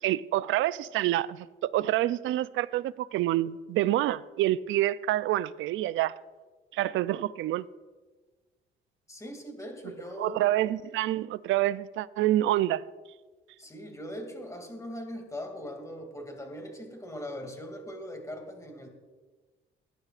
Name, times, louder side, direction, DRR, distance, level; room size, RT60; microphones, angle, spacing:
voice 1, 0.0-6.2 6.7-7.7 10.2-12.8, right 14 dB, 80° right, 0.4 m, -27 dB
voice 2, 9.1-10.6 13.6-18.9, equal, 15° left, 2.4 m, -40 dB
20.0 x 10.5 x 2.5 m
cardioid pair, 90°, 20 cm